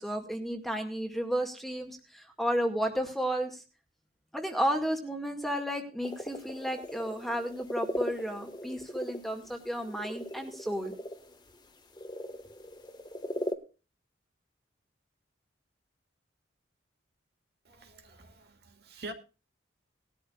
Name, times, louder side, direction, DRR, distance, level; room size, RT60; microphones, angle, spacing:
voice 1, 0.0-3.6 4.3-10.9, equal, ahead, 2.1 m, -32 dB
sound 1, 6.0-13.5, left 1 dB, 20° left, 1.6 m, -39 dB
voice 2, 17.6-19.1, right 1 dB, 55° right, 2.7 m, -45 dB
20.0 x 13.0 x 2.5 m
head